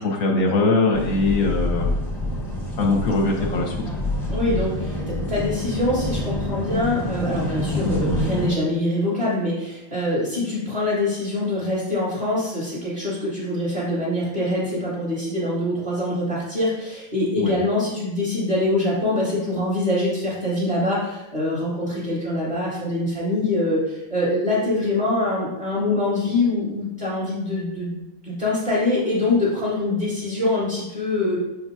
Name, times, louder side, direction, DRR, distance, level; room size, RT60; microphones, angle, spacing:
voice 1, 0.0-1.9 2.8-3.8 17.4-17.5, left 3 dB, 50° left, 0 dB, 1.2 m, -21 dB
sound 1, 0.9-8.5, left 1 dB, ahead, 1.3 m, -27 dB
voice 2, 4.3-31.4, left 2 dB, 20° right, -9 dB, 2.0 m, -24 dB
6.9 x 6.6 x 2.8 m, 0.98 s
omnidirectional pair, 2.4 m